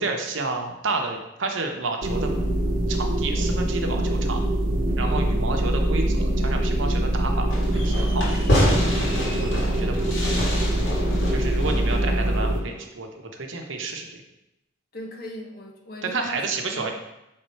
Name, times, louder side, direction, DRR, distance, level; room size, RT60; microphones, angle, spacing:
voice 1, 0.0-2.3 2.9-4.4 5.0-7.5 7.8-8.5 8.9-10.2 11.3-14.1 16.0-16.9, right 3 dB, 70° right, 3 dB, 0.9 m, -30 dB
sound 1, 2.0-12.6, right 1 dB, 45° right, 0.8 m, -24 dB
voice 2, 5.1-5.4 8.1-8.5 11.7-12.0 14.9-16.4 16.7-16.9, equal, 45° left, 0 dB, 1.0 m, -39 dB
Fireworks, 7.5-12.7, equal, 75° left, 2.3 m, -27 dB
6.5 x 3.6 x 4.5 m, 0.90 s
head